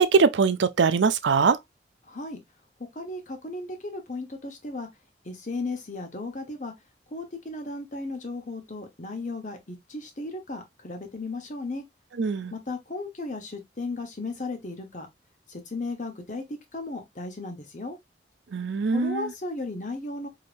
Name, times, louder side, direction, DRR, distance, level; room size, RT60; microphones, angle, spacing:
voice 1, 0.0-1.6 12.2-12.5 18.5-19.3, right 5 dB, 85° right, 0.5 m, -22 dB
voice 2, 2.1-2.4 2.9-4.9 5.2-6.7 7.1-11.8 12.5-15.1 15.5-16.4 16.7-18.0 18.9-20.3, left 2 dB, 45° left, 1.1 m, -35 dB
5.0 x 2.9 x 2.5 m
head